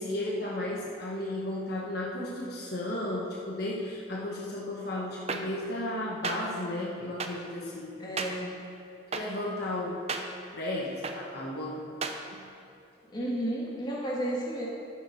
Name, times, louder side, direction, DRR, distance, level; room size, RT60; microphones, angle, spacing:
voice 1, 0.0-8.0 9.1-10.0 10.5-11.8 12.3-12.5, left 1 dB, 50° left, -4 dB, 1.2 m, -34 dB
sound 1, 5.3-5.4 6.2-6.4 7.2-7.3 8.2-8.3 9.1-9.2 10.1-10.2 11.0-11.2 12.0-12.2, right 5 dB, 30° right, 0.6 m, -31 dB
voice 2, 8.0-8.5 13.1-14.7, right 1 dB, 20° left, -4 dB, 1.8 m, -32 dB
12.5 x 7.3 x 4.9 m, 2.6 s
head